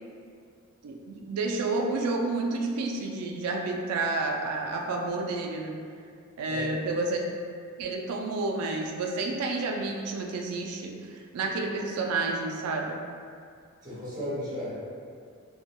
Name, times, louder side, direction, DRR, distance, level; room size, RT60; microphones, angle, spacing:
voice 1, 0.8-5.7 6.4-7.2 7.8-11.0 11.3-13.0, right 3 dB, 85° right, 2 dB, 0.3 m, -30 dB
voice 2, 6.4-6.8 13.8-14.7, left 1 dB, 20° right, -11 dB, 0.9 m, -35 dB
2.2 x 2.1 x 2.8 m, 2.2 s
head